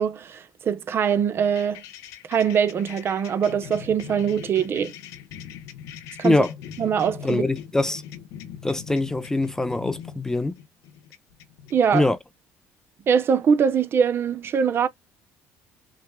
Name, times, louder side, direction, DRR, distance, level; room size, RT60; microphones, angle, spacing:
voice 1, 0.0-1.8 2.3-4.9 6.2-6.4 6.8-7.5 11.7-12.1 13.1-14.9, right 7 dB, 45° right, 0.8 m, -22 dB
sound 1, 1.4-12.0, left 9 dB, 80° left, 0.8 m, -41 dB
voice 2, 7.2-8.0 8.6-10.5 11.9-12.2, left 2 dB, 10° left, 0.6 m, -23 dB
5.9 x 2.3 x 2.2 m
cardioid pair, 100°, 6 cm